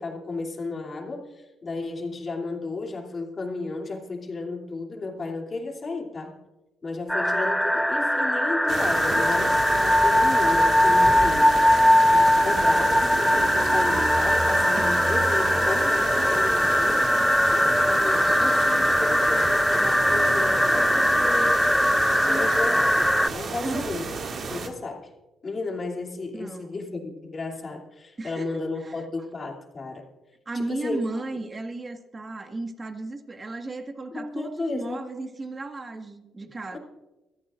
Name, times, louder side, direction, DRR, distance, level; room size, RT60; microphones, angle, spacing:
voice 1, 0.0-6.3 6.8-11.5 12.1-17.1 17.5-21.6 22.2-24.1 24.5-25.1 25.4-30.1 30.5-31.0 34.1-35.1 36.7-36.8, left 3 dB, 35° left, 0 dB, 2.9 m, -33 dB
sound 1, 7.1-23.3, equal, 5° left, 0.4 m, -21 dB
sound 2, 8.7-24.7, right 4 dB, 55° right, 2.1 m, -32 dB
voice 2, 12.5-12.9 22.2-22.5 23.6-24.0 26.3-26.7 28.2-29.0 30.4-36.8, right 2 dB, 30° right, 5 dB, 1.7 m, -35 dB
sound 3, 14.3-20.4, left 4 dB, 55° left, 2.1 m, -47 dB
25.0 x 14.5 x 2.5 m, 1.1 s
cardioid pair, 90°, 0 cm